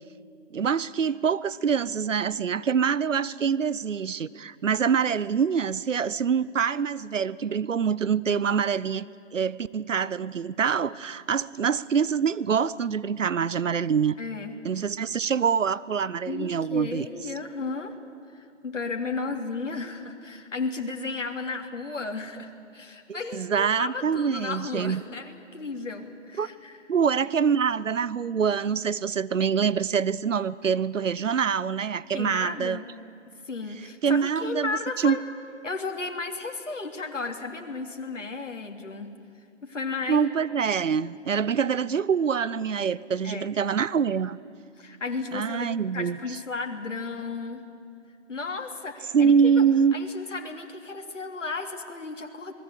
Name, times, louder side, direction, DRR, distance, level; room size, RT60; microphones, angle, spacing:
voice 1, 0.5-9.1 9.3-14.2 14.6-17.1 23.1-25.0 26.4-26.5 26.9-32.8 34.0-35.2 40.1-44.4 45.3-46.2 49.1-49.9, right 6 dB, 85° right, 19 dB, 0.8 m, -25 dB
voice 2, 14.2-14.5 16.3-17.9 18.3-26.8 32.1-32.8 33.5-35.2 35.6-39.1 39.6-40.3 43.2-43.5 44.8-47.6 48.3-49.6 49.9-52.5, left 4 dB, 80° left, 3 dB, 3.3 m, -34 dB
27.5 x 20.0 x 8.3 m, 2.4 s
figure-of-eight pair, 150°, 37 cm